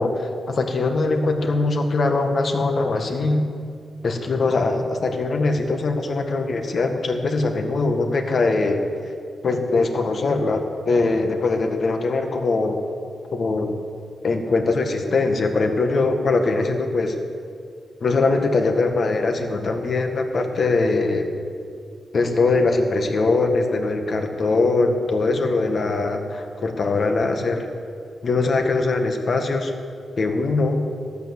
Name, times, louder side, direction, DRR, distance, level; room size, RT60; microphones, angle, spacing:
voice 1, 0.0-3.5 4.0-8.8 9.4-12.8 13.3-13.7 14.2-17.1 18.0-21.3 22.1-27.6 28.2-29.7 30.2-30.8, left 3 dB, 55° left, 5 dB, 1.4 m, -21 dB
13.0 x 8.8 x 7.1 m, 2.3 s
cardioid pair, 100°, 0 cm